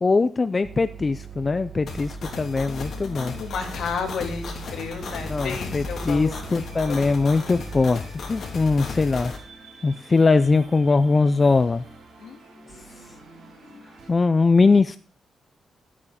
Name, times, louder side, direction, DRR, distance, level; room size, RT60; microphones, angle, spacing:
voice 1, 0.0-3.3 5.3-9.3 9.8-11.8 14.1-15.0, left 3 dB, 25° left, 11 dB, 0.4 m, -21 dB
sound 1, 0.6-7.9, right 9 dB, 40° right, 1.3 m, -41 dB
sound 2, 1.9-9.4, left 4 dB, 55° left, 3.0 m, -35 dB
voice 2, 2.3-7.1 8.4-8.5 12.2-13.8, left 5 dB, 75° left, 4 dB, 2.6 m, -34 dB
sound 3, 4.6-14.1, right 2 dB, 70° right, 4.4 m, -48 dB
12.0 x 8.6 x 5.0 m, 0.39 s
wide cardioid pair, 170°, 0 cm